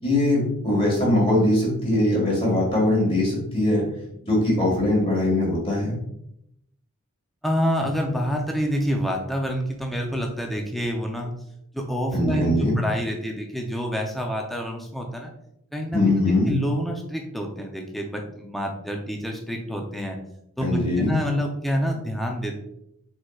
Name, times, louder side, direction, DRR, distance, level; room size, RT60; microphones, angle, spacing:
voice 1, 0.0-3.8 4.2-5.9 12.1-12.8 15.9-16.5 20.6-21.2, left 1 dB, 25° left, -3 dB, 1.7 m, -21 dB
voice 2, 7.4-11.3 11.7-15.3 15.7-20.2 20.6-22.6, equal, ahead, 1 dB, 0.5 m, -27 dB
4.6 x 4.4 x 2.3 m, 0.78 s
head